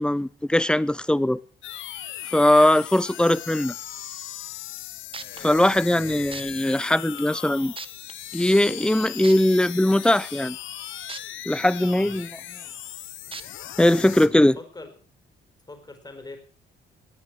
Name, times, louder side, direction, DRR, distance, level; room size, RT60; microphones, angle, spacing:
voice 1, 0.0-1.4 2.3-3.7 5.4-7.7 8.3-10.6 11.5-12.3 13.8-14.5, left 1 dB, 5° left, 0.6 m, -20 dB
sound 1, 1.6-14.3, left 12 dB, 80° left, 1.2 m, -38 dB
sound 2, 4.8-4.9 5.1-5.4 6.3-6.4 7.2-7.3 7.8-8.1 9.2-9.3 11.1-11.2 11.7-11.8 13.3-13.4 14.2-14.3, right 4 dB, 25° right, 1.3 m, -36 dB
voice 2, 6.0-6.4 12.0-12.2 14.2-14.9 15.7-16.4, left 2 dB, 20° left, 4.5 m, -42 dB
19.0 x 9.4 x 6.3 m
cardioid pair, 90°, 20 cm